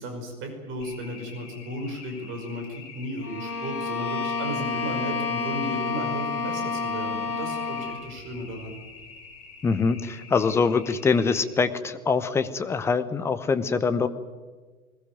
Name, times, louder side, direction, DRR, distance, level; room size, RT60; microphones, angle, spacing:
voice 1, 0.0-8.8, equal, 25° right, 4 dB, 5.4 m, -34 dB
sound 1, 0.8-11.4, left 5 dB, 40° left, 7.7 m, -46 dB
Bowed string instrument, 3.2-8.1, left 4 dB, 75° left, 4.6 m, -29 dB
voice 2, 9.6-14.1, left 5 dB, 5° left, 10 dB, 0.7 m, -24 dB
20.5 x 20.0 x 9.3 m, 1.4 s
figure-of-eight pair, 110°, 44 cm